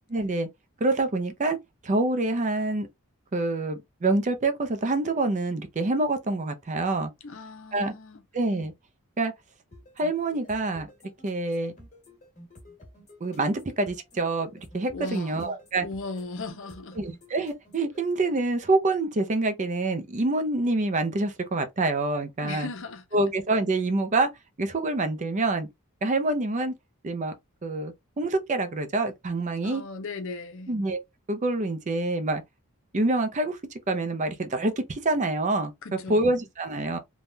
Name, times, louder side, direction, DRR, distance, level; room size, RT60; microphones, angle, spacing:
voice 1, 0.1-0.5 0.8-1.6 1.8-2.9 3.3-7.1 7.7-7.9 8.3-8.7 9.2-9.3 10.0-10.9 11.2-11.7 13.2-15.9 17.0-22.7 23.1-24.3 24.6-25.7 26.0-26.7 27.0-27.3 27.6-29.8 30.7-31.0 31.3-32.4 32.9-33.6 33.9-37.0, right 2 dB, 35° right, 0.5 m, -26 dB
voice 2, 7.2-8.2 14.9-17.0 22.4-23.2 29.6-30.8 35.8-36.4, left 3 dB, 60° left, 0.7 m, -38 dB
sound 1, 9.7-18.0, left 1 dB, 35° left, 1.5 m, -51 dB
3.5 x 2.2 x 2.6 m
head